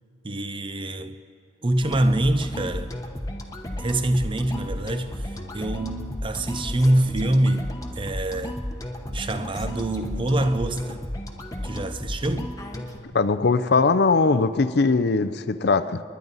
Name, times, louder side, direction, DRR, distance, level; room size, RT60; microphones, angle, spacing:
voice 1, 0.2-1.2 1.6-2.9 3.8-8.6 9.1-11.0 11.6-12.6, right 1 dB, 30° right, 0.6 m, -25 dB
sound 1, 1.8-13.0, left 1 dB, 20° left, 1.0 m, -33 dB
voice 2, 13.1-16.0, left 4 dB, 65° left, 0.6 m, -20 dB
29.0 x 10.5 x 4.1 m
head